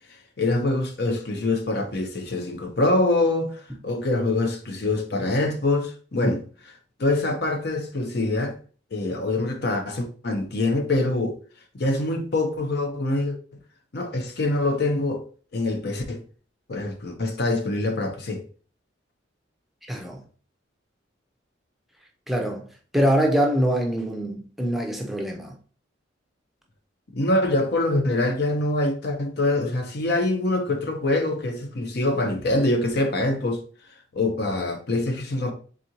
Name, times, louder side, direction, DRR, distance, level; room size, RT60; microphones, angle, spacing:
voice 1, 0.4-6.4 7.0-8.5 8.9-11.4 11.7-13.4 13.9-15.2 15.5-16.2 16.7-18.4 27.1-33.6 34.1-35.5, left 2 dB, 55° left, 0.7 m, -24 dB
voice 2, 19.9-20.2 22.3-22.7 22.9-25.5, equal, ahead, 0.6 m, -24 dB
4.0 x 3.7 x 2.9 m
head